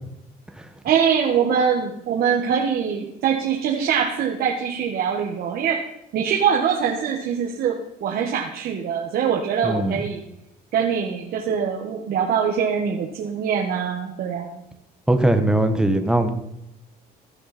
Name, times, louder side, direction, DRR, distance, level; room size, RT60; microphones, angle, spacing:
voice 1, 0.8-5.8 6.1-10.2 10.7-14.6, right 7 dB, 65° right, -1 dB, 1.7 m, -23 dB
voice 2, 9.6-9.9 15.1-16.3, right 1 dB, 5° right, 7 dB, 1.5 m, -19 dB
15.5 x 9.9 x 4.4 m, 0.83 s
cardioid pair, 110°, 17 cm